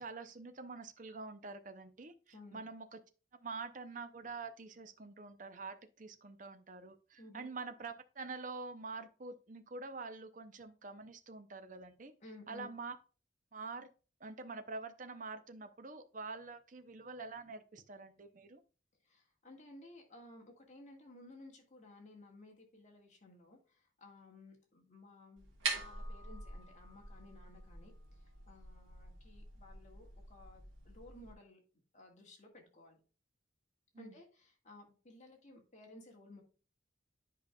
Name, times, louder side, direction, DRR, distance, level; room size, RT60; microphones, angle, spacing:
voice 1, 0.0-3.0 3.3-12.1 12.5-13.0 13.5-13.9 14.2-18.6 33.9-34.2, right 4 dB, 40° right, 10 dB, 0.6 m, -46 dB
voice 2, 2.3-2.7 7.2-7.5 12.2-12.7 19.0-25.4 25.7-31.6 31.9-33.0 34.0-36.4, left 2 dB, 40° left, 1 dB, 1.7 m, -57 dB
sound 1, 25.4-31.3, right 3 dB, 85° right, 1.8 m, -45 dB
10.5 x 5.1 x 2.3 m, 0.36 s
head